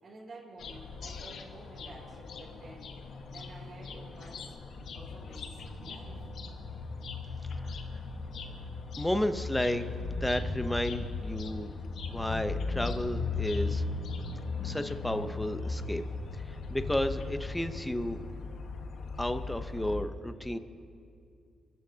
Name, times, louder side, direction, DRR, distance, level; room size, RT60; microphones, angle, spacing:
voice 1, 0.0-2.9 3.3-4.5 4.9-6.3, right 2 dB, 50° right, -4 dB, 5.0 m, -51 dB
sound 1, 0.6-20.0, left 4 dB, 70° left, 1.3 m, -37 dB
voice 2, 7.5-8.0 9.0-11.7 12.1-13.8 14.6-16.0 16.3-18.2 19.2-20.6, left 1 dB, 10° left, 8 dB, 0.8 m, -32 dB
30.0 x 14.0 x 2.8 m, 2.4 s
cardioid pair, 90°, 0 cm